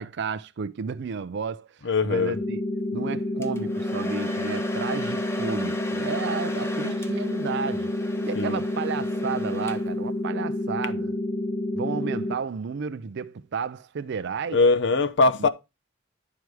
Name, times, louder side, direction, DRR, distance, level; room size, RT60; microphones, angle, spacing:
voice 1, 0.0-2.6 2.9-7.9 8.2-11.1 11.7-14.6 15.4-15.5, right 6 dB, 60° right, 0.4 m, -32 dB
voice 2, 1.8-2.4 8.3-8.6 14.5-15.5, left 3 dB, 65° left, 0.8 m, -21 dB
sound 1, 2.3-12.3, left 1 dB, 45° left, 1.1 m, -29 dB
Domestic sounds home sounds, 3.4-10.1, equal, 15° left, 1.0 m, -38 dB
10.5 x 4.7 x 4.7 m
head